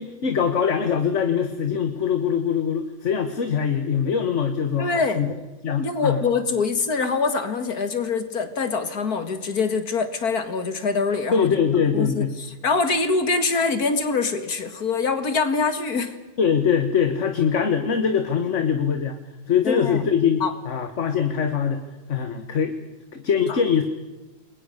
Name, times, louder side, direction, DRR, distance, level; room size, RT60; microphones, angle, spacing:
voice 1, 0.0-5.3 5.6-6.2 11.3-12.3 16.4-19.2 19.5-21.8 22.1-22.7 23.1-23.8, left 7 dB, 50° left, 8 dB, 1.7 m, -22 dB
voice 2, 4.8-5.3 5.8-11.6 11.9-16.1 19.6-20.0 20.4-20.5 23.5-23.6, left 4 dB, 65° left, 10 dB, 2.4 m, -24 dB
29.0 x 22.0 x 6.7 m, 1.1 s
omnidirectional pair, 1.7 m